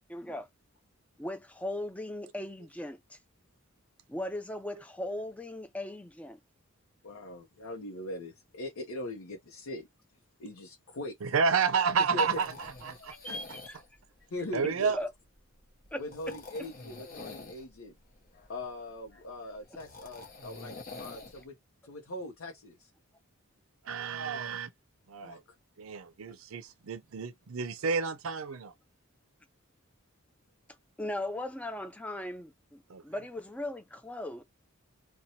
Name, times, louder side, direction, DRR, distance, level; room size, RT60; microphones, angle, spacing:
voice 1, 0.1-0.5 1.2-3.2 4.1-6.4 13.2-13.8 14.9-15.1 15.9-16.0 31.0-34.4, left 1 dB, 5° left, 0.4 m, -38 dB
voice 2, 7.0-9.9 10.4-11.3 12.1-12.4 13.3-13.4 14.3-14.9 16.0-17.9 18.5-21.5 21.8-22.9 25.2-25.4, left 1 dB, 85° left, 0.7 m, -40 dB
voice 3, 11.2-13.1 14.5-15.0 23.8-24.7 25.1-25.4 25.8-28.7 32.9-33.0, right 5 dB, 75° right, 0.5 m, -30 dB
sound 1, 11.8-21.4, left 3 dB, 45° left, 0.8 m, -49 dB
2.8 x 2.2 x 2.7 m
head